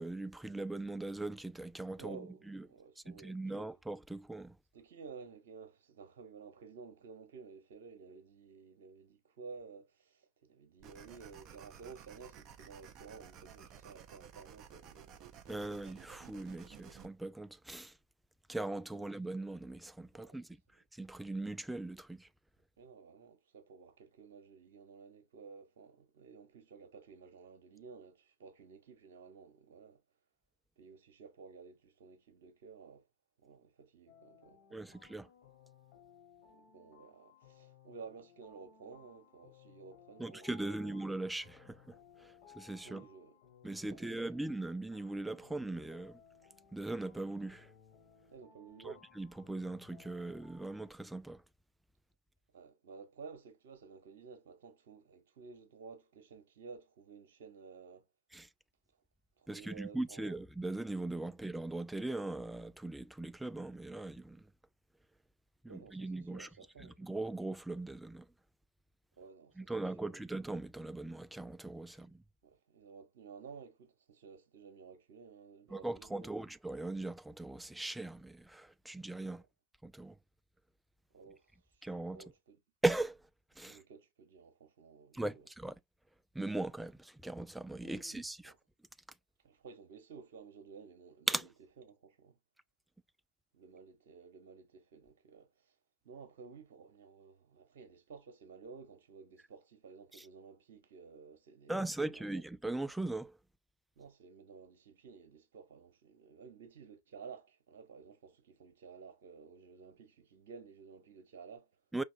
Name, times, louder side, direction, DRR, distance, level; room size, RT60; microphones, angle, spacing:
voice 1, 0.0-2.2 2.5-2.6 3.1-4.6 15.5-17.9 18.5-20.5 20.9-22.3 34.7-35.3 40.2-43.0 43.6-46.2 46.7-47.7 48.8-51.4 58.3-58.5 59.5-64.5 65.6-66.5 66.8-68.3 69.6-72.2 75.7-79.4 79.8-80.1 81.8-82.2 82.8-83.2 83.6-83.8 85.1-85.8 86.3-88.5 91.3-91.5 101.7-103.4 111.9-112.0, right 2 dB, 5° right, 0.3 m, -39 dB
voice 2, 2.0-3.7 4.7-15.3 18.9-19.0 20.1-20.4 22.8-30.0 30.8-33.1 33.4-34.8 36.5-41.0 42.8-43.3 43.7-44.4 48.3-49.1 52.5-58.1 59.4-60.4 61.3-61.4 65.7-67.1 69.2-70.3 71.9-72.1 72.4-76.5 81.1-82.6 83.7-85.5 87.8-88.6 89.4-91.5 91.8-92.4 93.5-95.7 96.0-102.4 104.0-111.8, right 5 dB, 55° right, 1.0 m, -54 dB
sound 1, 10.8-17.1, right 8 dB, 35° right, 0.7 m, -54 dB
sound 2, 34.1-50.9, left 7 dB, 50° left, 3.2 m, -62 dB
5.1 x 3.5 x 2.5 m
figure-of-eight pair, 90°, 0 cm